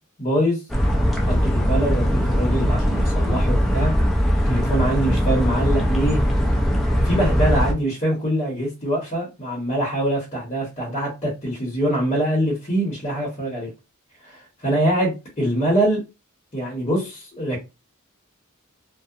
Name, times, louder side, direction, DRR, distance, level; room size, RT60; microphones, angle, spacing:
voice 1, 0.2-0.6 1.2-3.9 4.4-6.2 6.7-13.7 14.2-16.0 16.5-17.6, right 1 dB, 30° left, -4 dB, 0.8 m, -24 dB
sound 1, 0.7-7.7, equal, ahead, 0.3 m, -20 dB
2.7 x 2.0 x 2.4 m, 0.26 s
head